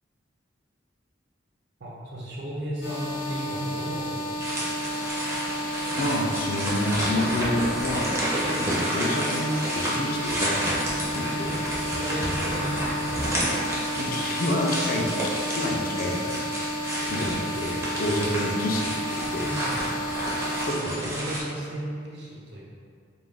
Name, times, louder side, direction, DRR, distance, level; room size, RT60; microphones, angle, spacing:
voice 1, 1.8-5.2 8.6-8.8 11.9-13.4 17.1-17.5 19.2-20.2 21.0-22.6, right 1 dB, 60° right, -4 dB, 0.6 m, -36 dB
sound 1, 2.8-20.7, equal, 60° left, 0.8 m, -32 dB
sound 2, 4.4-21.4, right 1 dB, 15° right, 0.4 m, -30 dB
voice 2, 6.0-8.1 8.6-10.8 11.1-11.5 13.9-15.2 15.5-16.7 16.9-19.5 20.6-20.9, left 1 dB, 45° left, -1 dB, 0.3 m, -28 dB
2.3 x 2.1 x 3.3 m, 2.2 s
head